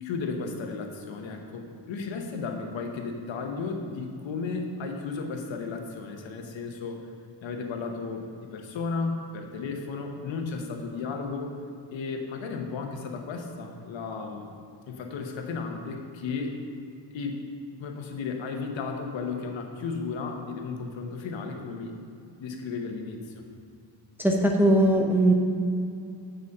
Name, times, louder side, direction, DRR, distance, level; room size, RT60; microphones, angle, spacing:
voice 1, 0.0-7.0 7.4-11.5 11.9-14.5 14.9-16.5 17.1-17.4 17.8-21.9 22.4-23.4, left 4 dB, 85° left, 3 dB, 1.1 m, -34 dB
voice 2, 24.2-25.3, right 1 dB, 5° right, -1 dB, 0.6 m, -20 dB
8.0 x 6.2 x 5.4 m, 2.5 s
wide cardioid pair, 170°, 44 cm